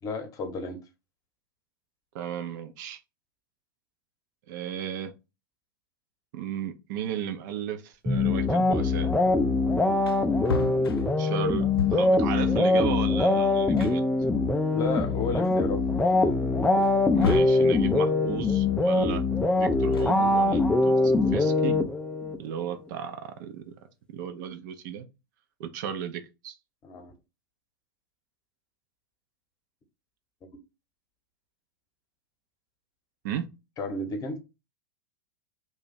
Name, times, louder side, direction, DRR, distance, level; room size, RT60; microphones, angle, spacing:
voice 1, 0.0-0.8 12.8-12.9 14.7-15.8 16.4-16.7 17.5-17.6 26.8-27.1 33.8-34.4, left 3 dB, 30° left, 0.9 m, -32 dB
voice 2, 2.1-3.0 4.5-5.1 6.3-9.1 11.2-14.0 17.1-19.2 19.6-21.8 22.4-23.7 24.1-25.1 25.6-26.5 33.2-33.5, right 9 dB, 50° right, 0.6 m, -35 dB
sound 1, 8.1-22.4, left 2 dB, 5° left, 0.3 m, -23 dB
Wood, 9.6-9.7 9.9-12.2 13.3-13.4 13.8-14.9 15.4-15.5 16.8-17.7 19.7-20.7, left 5 dB, 80° left, 0.4 m, -34 dB
2.7 x 2.4 x 4.0 m
figure-of-eight pair, 95°, 12 cm